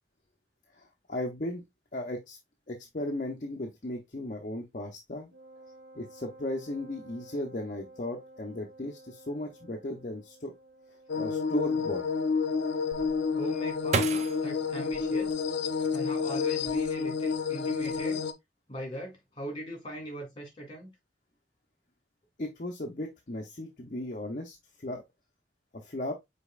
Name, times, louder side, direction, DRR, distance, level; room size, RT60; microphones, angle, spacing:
voice 1, 0.7-1.6 1.9-2.4 2.7-5.3 5.9-10.5 11.1-12.0 22.4-25.0 25.7-26.1, left 1 dB, 45° left, 0.7 m, -36 dB
Wind instrument woodwind instrument, 5.3-11.9, right 2 dB, 85° right, 2.5 m, -53 dB
sound 1, 11.1-18.3, left 5 dB, 80° left, 0.6 m, -29 dB
sound 2, 12.9-16.0 16.5-17.3 17.6-18.0, right 4 dB, 40° right, 0.5 m, -35 dB
voice 2, 13.4-15.4 15.9-18.2 18.7-20.9, equal, 25° left, 2.3 m, -40 dB
5.2 x 4.2 x 2.3 m
head